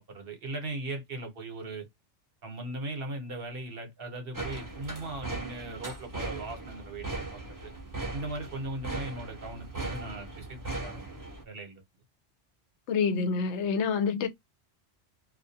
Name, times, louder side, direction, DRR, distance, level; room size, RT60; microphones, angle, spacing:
voice 1, 0.0-1.9 2.4-7.7 8.1-11.1 11.4-11.8, right 2 dB, 60° right, 1.0 m, -39 dB
sound 1, 4.3-11.4, right 2 dB, 20° right, 0.6 m, -38 dB
voice 2, 12.9-14.3, left 5 dB, 80° left, 0.9 m, -27 dB
2.3 x 2.2 x 2.6 m
omnidirectional pair, 1.2 m